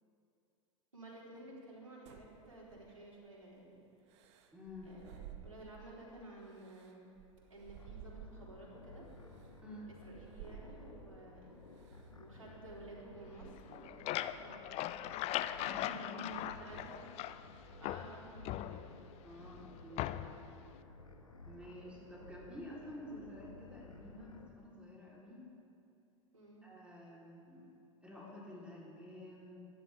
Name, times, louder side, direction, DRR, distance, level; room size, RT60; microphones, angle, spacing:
voice 1, 0.9-3.8 4.8-5.1 5.4-7.1 7.5-9.1 10.0-11.6 11.9-14.8 16.1-17.1 17.8-19.0 26.3-26.7, right 2 dB, 85° right, -5 dB, 3.7 m, -53 dB
sound 1, 2.1-3.2 4.1-6.0 6.5-8.7 9.3-9.5 10.1-11.2 11.8-12.1 12.5-13.9, right 8 dB, 60° right, 1.1 m, -54 dB
voice 2, 4.5-4.9 9.6-9.9 15.6-16.7 19.2-20.3 21.5-25.5 26.6-27.7 28.0-29.6, left 1 dB, 5° right, -5 dB, 3.6 m, -50 dB
sound 2, 7.8-24.5, left 2 dB, 90° left, 1.1 m, -56 dB
sound 3, 13.6-17.5 17.8-19.2 20.0-20.5, left 13 dB, 40° left, 0.5 m, -39 dB
22.5 x 11.0 x 3.5 m, 2.6 s
figure-of-eight pair, 85°, 17 cm